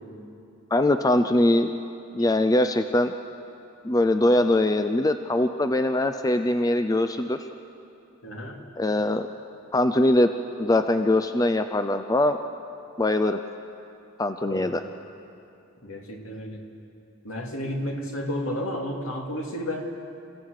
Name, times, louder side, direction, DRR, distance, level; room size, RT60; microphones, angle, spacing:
voice 1, 0.7-1.7 2.1-3.1 3.8-7.4 8.8-9.3 9.7-10.3 10.6-12.4 13.0-13.4 14.2-14.8, left 1 dB, 15° left, 8 dB, 0.5 m, -22 dB
voice 2, 8.2-8.6 14.4-14.7 15.8-16.6 17.2-19.9, left 1 dB, 70° left, 1 dB, 2.5 m, -32 dB
28.0 x 16.0 x 6.5 m, 2.7 s
head